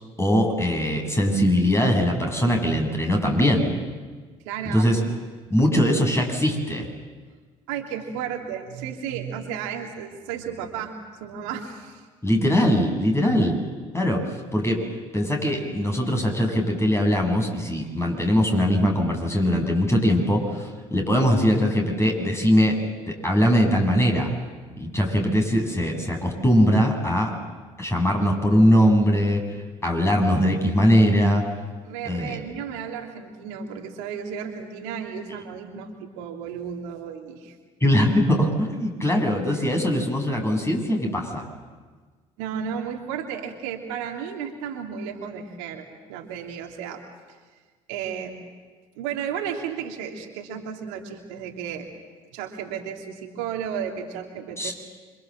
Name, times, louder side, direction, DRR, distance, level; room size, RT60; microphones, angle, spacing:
voice 1, 0.2-3.7 4.7-5.0 5.5-6.9 12.2-13.6 13.9-14.2 14.5-14.8 15.1-22.8 23.1-24.3 24.8-27.3 27.8-29.4 29.8-31.4 32.0-32.4 37.8-41.5 54.6-54.7, equal, 15° left, 2 dB, 7.7 m, -21 dB
voice 2, 4.4-4.8 7.7-10.9 11.2-12.0 29.9-30.0 31.8-37.5 39.6-39.7 42.4-47.0 47.9-48.3 49.0-51.9 52.3-54.7, right 7 dB, 80° right, 1 dB, 3.0 m, -33 dB
27.0 x 25.0 x 7.7 m, 1.4 s
hypercardioid pair, 60°, 17 cm